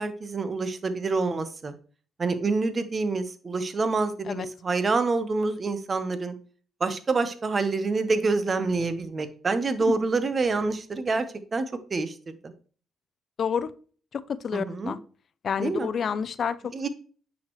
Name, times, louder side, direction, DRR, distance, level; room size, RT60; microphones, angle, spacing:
voice 1, 0.0-1.7 2.2-6.3 6.8-12.1 12.4-12.5 14.5-15.0 15.6-15.9 16.7-16.9, right 3 dB, 35° right, 10 dB, 1.0 m, -27 dB
voice 2, 13.4-13.7 14.1-15.0 15.4-16.7, left 7 dB, 50° left, 16 dB, 0.5 m, -29 dB
9.4 x 6.4 x 3.1 m, 0.41 s
cardioid pair, 90°, 0 cm